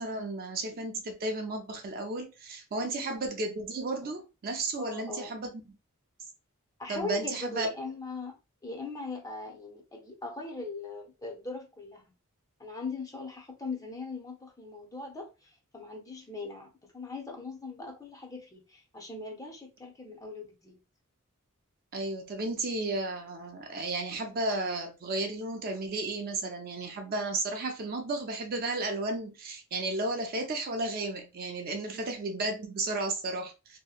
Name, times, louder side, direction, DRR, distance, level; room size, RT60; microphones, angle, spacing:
voice 1, 0.0-5.5 6.9-7.7 21.9-33.8, right 2 dB, 45° right, 0.5 m, -33 dB
voice 2, 4.8-5.4 6.8-8.4 8.6-12.1 12.6-20.8 31.8-32.0, left 3 dB, 15° left, 0.6 m, -40 dB
2.7 x 2.1 x 2.4 m
head